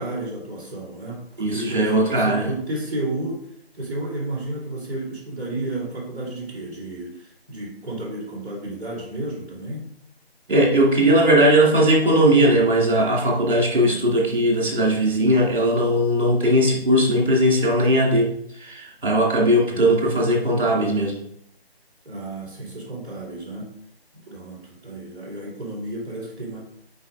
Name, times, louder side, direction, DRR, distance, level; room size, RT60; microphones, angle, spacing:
voice 1, 0.0-3.4 3.7-9.9 13.8-14.1 22.0-23.8 24.1-26.6, right 2 dB, 10° right, -12 dB, 2.3 m, -32 dB
voice 2, 1.4-2.5 10.5-21.2, right 1 dB, 55° right, -3 dB, 2.3 m, -19 dB
8.4 x 4.8 x 2.4 m, 0.71 s
figure-of-eight pair, 160°, 32 cm